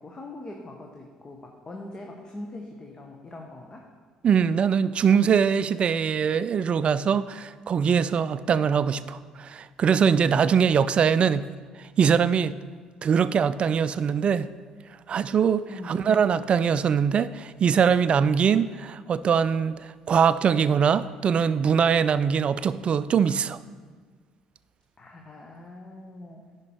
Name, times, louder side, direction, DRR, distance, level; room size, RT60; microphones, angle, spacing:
voice 1, 0.0-3.9 15.7-16.0 18.4-18.7 25.0-26.4, left 2 dB, 30° left, 1 dB, 1.0 m, -42 dB
voice 2, 4.2-11.5 12.0-12.5 13.0-14.5 15.1-18.7 19.1-19.7 20.1-23.6, right 7 dB, 45° right, 15 dB, 0.3 m, -22 dB
10.5 x 5.1 x 4.4 m, 1.5 s
hypercardioid pair, 55°, 3 cm